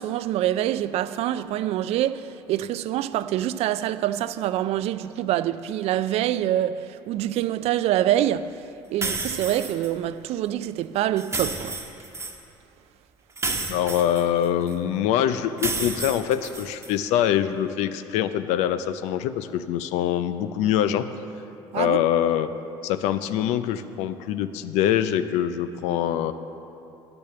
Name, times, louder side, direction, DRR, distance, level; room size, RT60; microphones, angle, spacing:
voice 1, 0.0-8.6 8.9-11.8 21.7-22.0, right 12 dB, 60° right, 0.4 m, -25 dB
sound 1, 9.0-9.9 11.2-12.4 13.4-14.7 15.6-16.9, right 3 dB, 20° right, 1.1 m, -31 dB
voice 2, 13.7-21.1 21.7-22.5 22.8-26.3, left 10 dB, 70° left, 0.5 m, -24 dB
10.5 x 6.9 x 6.7 m
hypercardioid pair, 65°, 12 cm